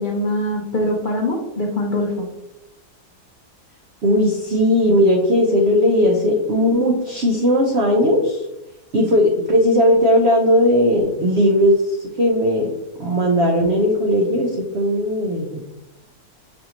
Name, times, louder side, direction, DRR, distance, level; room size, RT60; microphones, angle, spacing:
voice 1, 0.0-2.3, left 1 dB, 80° left, 0 dB, 0.4 m, -23 dB
voice 2, 4.0-8.4 8.9-12.7 13.0-15.6, equal, 60° right, 0 dB, 0.7 m, -17 dB
6.2 x 2.6 x 2.9 m, 0.89 s
omnidirectional pair, 1.7 m